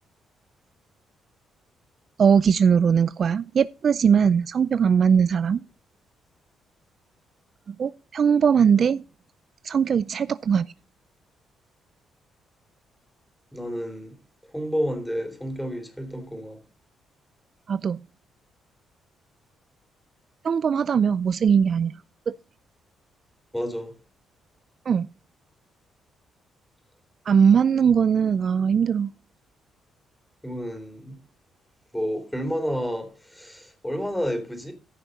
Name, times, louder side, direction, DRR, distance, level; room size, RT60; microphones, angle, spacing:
voice 1, 2.2-5.6 7.7-9.0 9.6-10.7 17.7-18.0 20.4-21.9 22.3-22.4 24.9-25.1 27.3-29.1, right 7 dB, 50° right, 0.4 m, -20 dB
voice 2, 13.5-14.1 14.5-16.6 23.5-23.9 30.4-31.2 31.9-34.7, equal, 5° left, 3.5 m, -30 dB
15.0 x 6.2 x 4.1 m
cardioid pair, 90°, 0 cm